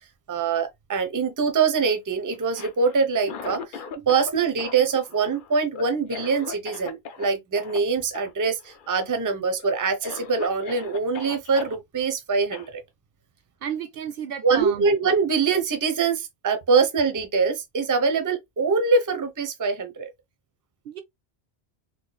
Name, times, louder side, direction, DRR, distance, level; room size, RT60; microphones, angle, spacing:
voice 1, 0.3-12.8 14.4-20.1, right 5 dB, 25° right, 0.5 m, -24 dB
Cough, 2.4-4.3 4.6-7.3 7.6-7.8 8.1-8.3 8.6-9.1 9.6-9.7 10.0-11.8 12.5-12.7, left 6 dB, 60° left, 0.7 m, -38 dB
voice 2, 13.6-14.9 20.8-21.0, right 8 dB, 65° right, 0.7 m, -32 dB
3.1 x 2.3 x 3.8 m
omnidirectional pair, 1.1 m